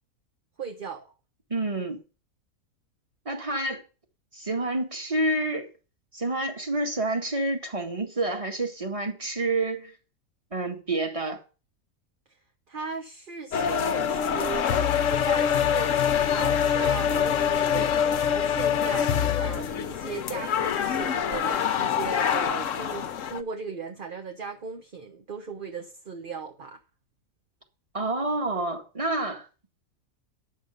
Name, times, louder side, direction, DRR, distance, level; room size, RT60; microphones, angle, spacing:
voice 1, 0.6-1.1 12.7-26.8, right 5 dB, 40° right, 1.1 m, -38 dB
voice 2, 1.5-2.0 3.3-3.8 4.3-5.7 6.1-9.9 10.5-11.4 27.9-29.5, right 2 dB, 20° right, 1.9 m, -28 dB
sound 1, 13.5-23.4, left 8 dB, 65° left, 1.1 m, -25 dB
10.0 x 6.7 x 6.7 m
omnidirectional pair, 1.6 m